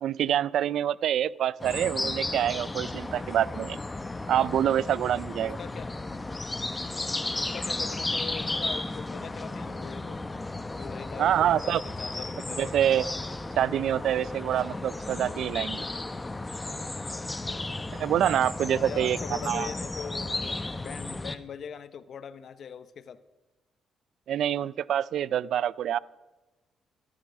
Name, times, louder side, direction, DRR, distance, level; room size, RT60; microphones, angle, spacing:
voice 1, 0.0-3.8 4.3-5.6 11.2-11.8 12.6-13.1 13.6-15.8 17.9-19.2 19.5-19.7 24.3-26.0, right 10 dB, 70° right, 21 dB, 0.4 m, -26 dB
sound 1, 1.6-21.4, left 2 dB, 20° left, 0.9 m, -34 dB
voice 2, 5.4-5.9 7.3-10.2 10.7-12.8 18.7-23.2, left 7 dB, 60° left, 14 dB, 1.0 m, -41 dB
14.0 x 13.5 x 6.3 m, 1.1 s
cardioid pair, 90°, 0 cm